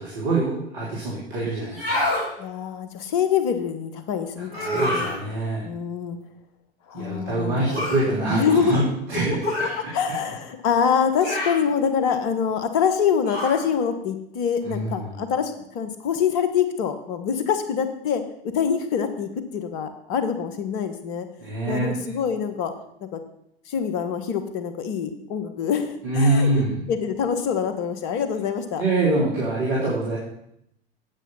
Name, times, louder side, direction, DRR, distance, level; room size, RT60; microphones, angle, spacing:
voice 1, 0.0-2.0 4.4-5.7 6.9-8.8 9.1-9.4 14.6-15.1 21.4-22.0 26.0-26.8 28.8-30.2, right 2 dB, 55° right, -5 dB, 3.2 m, -24 dB
sound 1, 1.6-2.3 4.5-5.2 7.7-8.0 9.4-9.8 11.2-11.6 13.3-13.6, left 1 dB, 80° right, 4.6 m, -26 dB
voice 2, 2.4-5.2 5.6-6.2 6.9-7.9 8.3-8.8 9.8-21.3 21.7-22.7 23.0-23.2 23.7-28.8, left 7 dB, 50° left, 9 dB, 1.4 m, -25 dB
8.9 x 8.4 x 5.7 m, 0.76 s
figure-of-eight pair, 80°, 31 cm